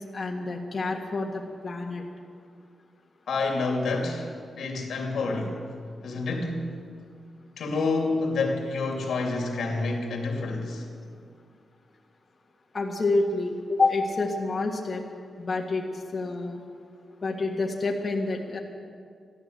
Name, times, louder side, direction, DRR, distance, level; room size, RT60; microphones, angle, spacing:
voice 1, 0.0-2.0 12.7-15.0 15.4-16.6 17.2-18.6, left 3 dB, 40° left, -1 dB, 1.6 m, -28 dB
voice 2, 3.3-4.3 4.6-5.6 6.0-6.7 7.6-10.9, left 3 dB, 85° left, 2 dB, 2.7 m, -28 dB
14.5 x 12.5 x 8.0 m, 2.2 s
cardioid pair, 90°, 0 cm